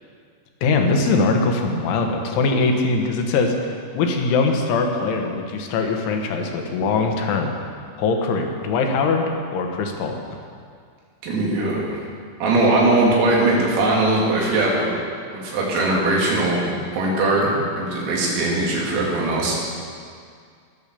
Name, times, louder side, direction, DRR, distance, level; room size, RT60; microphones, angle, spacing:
voice 1, 0.6-7.5 8.0-9.3 9.5-10.2, left 3 dB, 70° left, 3 dB, 3.6 m, -21 dB
voice 2, 11.2-12.0 12.4-14.9 15.3-19.6, right 2 dB, 90° right, -4 dB, 5.6 m, -20 dB
22.0 x 8.0 x 6.9 m, 2.2 s
omnidirectional pair, 5.9 m